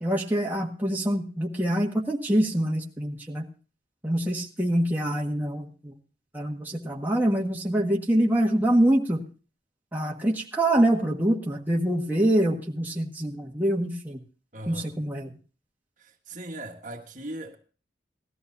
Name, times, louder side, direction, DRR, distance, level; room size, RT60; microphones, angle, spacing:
voice 1, 0.0-3.5 4.0-5.9 6.3-9.2 9.9-14.2 14.7-15.3, right 1 dB, 10° right, 1.5 m, -25 dB
voice 2, 14.5-14.9 16.0-17.6, right 1 dB, 45° right, 1.5 m, -39 dB
18.5 x 13.5 x 2.7 m
head